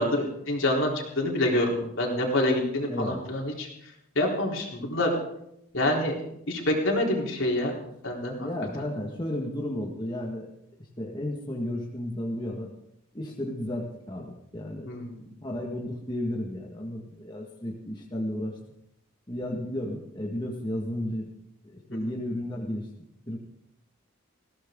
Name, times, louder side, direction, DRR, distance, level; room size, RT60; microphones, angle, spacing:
voice 1, 0.0-3.7 4.2-5.1 5.7-6.1 6.5-7.7 8.0-8.5 8.8-8.9 14.8-15.2 21.9-22.0, left 1 dB, 65° left, -1 dB, 4.0 m, -26 dB
voice 2, 2.9-3.2 8.4-10.5 11.0-12.7 13.1-14.9 15.4-18.5 19.3-21.3 21.6-22.9 23.3-23.4, left 1 dB, 20° left, -1 dB, 1.9 m, -33 dB
20.5 x 16.5 x 3.9 m, 0.79 s
head